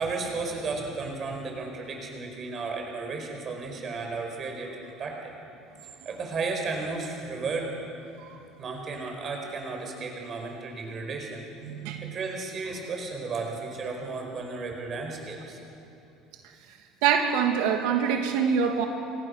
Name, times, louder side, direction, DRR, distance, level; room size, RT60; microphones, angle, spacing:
voice 1, 0.0-5.3 6.0-7.7 8.6-11.5 12.0-15.6, right 4 dB, 30° right, 2 dB, 4.8 m, -34 dB
voice 2, 11.7-12.1 17.0-18.9, right 7 dB, 80° right, 3 dB, 2.3 m, -24 dB
29.0 x 26.0 x 6.7 m, 2.7 s
cardioid pair, 170°, 0 cm